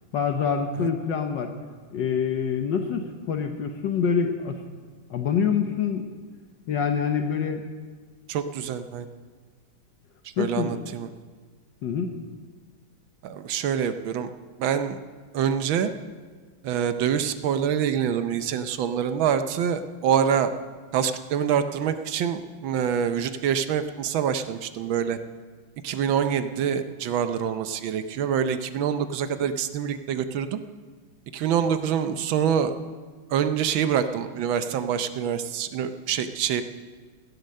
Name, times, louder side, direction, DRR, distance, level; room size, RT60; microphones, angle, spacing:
voice 1, 0.1-1.5 1.9-4.6 5.1-6.1 6.7-7.6 10.4-10.7 11.8-12.2, left 6 dB, 65° left, 5 dB, 1.5 m, -26 dB
voice 2, 8.3-9.1 10.4-11.1 13.2-14.3 14.6-15.0 15.3-15.9 16.6-20.5 20.9-25.2 25.8-30.6 31.3-32.8 33.3-36.6, right 8 dB, 75° right, 10 dB, 1.5 m, -25 dB
16.0 x 11.0 x 6.5 m, 1.5 s
omnidirectional pair, 2.2 m